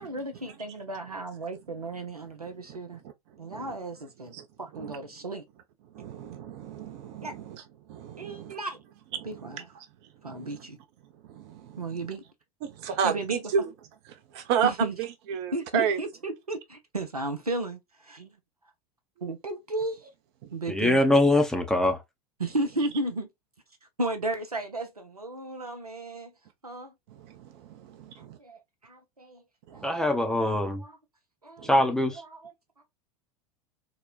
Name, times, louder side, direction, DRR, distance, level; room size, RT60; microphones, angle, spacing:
voice 1, 0.0-3.0 3.4-5.4 7.2-7.3 8.2-8.8 9.3-9.6 10.2-10.8 11.8-12.2 13.0-13.4 14.6-14.9 15.5-18.3 19.2-20.0 20.5-21.0 22.4-23.3 24.0-26.3 26.6-26.9 28.2-29.4 29.7-30.0 30.4-31.0 31.4-31.7 32.2-32.5, right 2 dB, 90° right, 0.7 m, -34 dB
voice 2, 2.4-3.8 4.2-4.5 4.7-5.0 5.8-8.6 9.1-10.7 11.0-12.2 12.6-13.7 14.0-16.0 20.4-20.5 27.1-28.4 29.7-29.9 31.6-31.7, right 8 dB, 45° right, 0.7 m, -33 dB
voice 3, 20.7-22.0 29.8-30.8 31.6-32.2, left 1 dB, 5° left, 0.6 m, -23 dB
3.8 x 2.2 x 2.3 m
figure-of-eight pair, 85°, 19 cm